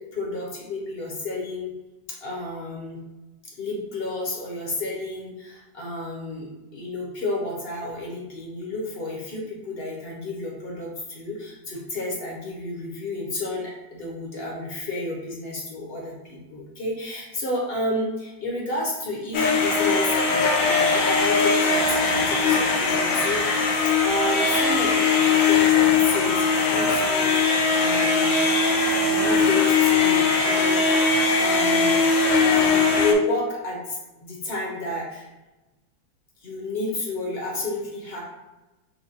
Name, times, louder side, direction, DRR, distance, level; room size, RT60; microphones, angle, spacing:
voice 1, 0.0-1.7 2.2-3.0 3.6-28.3 29.0-32.1 32.4-35.3 36.4-38.2, left 2 dB, 45° left, -3 dB, 0.8 m, -31 dB
sound 1, 19.3-33.1, left 4 dB, 85° left, 1.3 m, -20 dB
6.0 x 2.3 x 2.7 m, 1.1 s
omnidirectional pair, 2.0 m